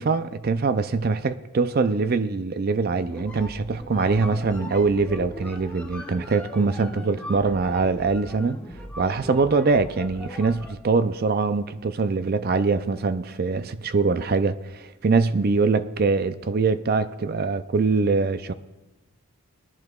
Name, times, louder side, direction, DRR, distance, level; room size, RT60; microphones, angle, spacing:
voice 1, 0.0-8.6 9.0-18.5, right 4 dB, 45° right, 0.4 m, -23 dB
sound 1, 3.1-10.9, left 1 dB, 5° left, 0.6 m, -40 dB
21.5 x 10.5 x 2.4 m
head